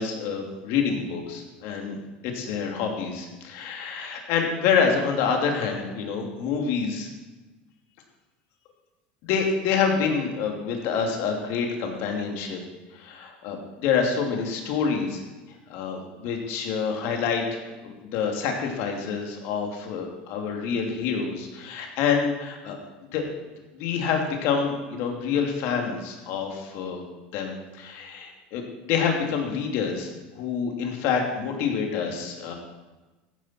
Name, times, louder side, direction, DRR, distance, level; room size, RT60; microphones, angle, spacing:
voice 1, 0.0-7.1 9.2-12.6 12.9-15.2 15.7-22.8 23.1-23.3 23.7-27.0 27.3-32.6, left 6 dB, 65° left, 2 dB, 2.6 m, -27 dB
14.0 x 10.0 x 4.4 m, 1.2 s
supercardioid pair, 100°, 5 cm